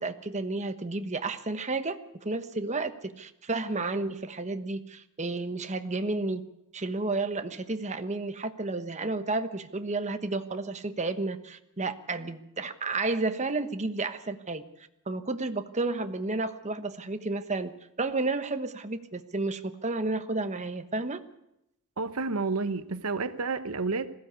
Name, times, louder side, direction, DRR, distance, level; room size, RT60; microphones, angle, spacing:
voice 1, 0.0-6.4 6.7-14.6 15.1-21.2, right 3 dB, 35° right, 9 dB, 1.2 m, -31 dB
voice 2, 22.0-24.1, right 4 dB, 90° right, 11 dB, 1.1 m, -30 dB
20.5 x 15.5 x 8.3 m, 0.85 s
head